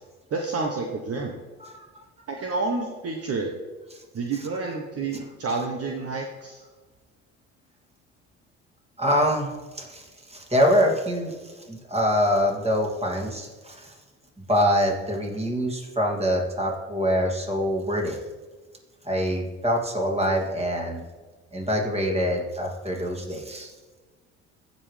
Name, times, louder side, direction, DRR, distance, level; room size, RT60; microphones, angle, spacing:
voice 1, 0.3-1.4 2.3-3.5 4.1-6.6, right 3 dB, 45° right, 2 dB, 1.2 m, -29 dB
voice 2, 9.0-13.9 14.5-18.2 19.0-21.0 21.5-23.7, equal, 20° right, 0 dB, 2.7 m, -25 dB
16.0 x 5.3 x 3.4 m, 1.3 s
hypercardioid pair, 60°, 33 cm